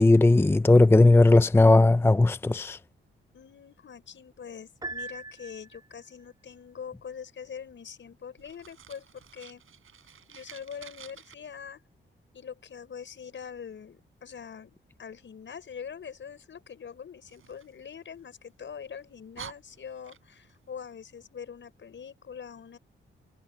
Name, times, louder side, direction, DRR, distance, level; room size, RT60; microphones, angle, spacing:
voice 1, 0.0-2.8, left 2 dB, 10° left, 0.5 m, -18 dB
voice 2, 3.3-9.6 10.3-11.8 12.3-22.8, left 7 dB, 65° left, 6.3 m, -43 dB
Piano, 4.8-6.1, right 3 dB, 20° right, 3.8 m, -40 dB
Fire, 8.4-11.3 17.3-18.5 19.0-19.1 19.3-20.6, right 9 dB, 75° right, 7.8 m, -49 dB
cardioid pair, 85°, 21 cm